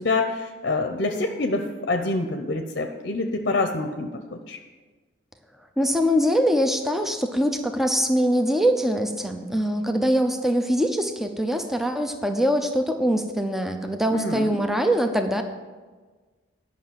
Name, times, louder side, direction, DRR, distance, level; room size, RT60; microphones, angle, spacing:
voice 1, 0.0-4.6 14.1-14.6, left 2 dB, 55° left, 5 dB, 0.8 m, -26 dB
voice 2, 5.8-15.4, equal, ahead, 5 dB, 0.7 m, -23 dB
11.5 x 5.9 x 7.5 m, 1.4 s
head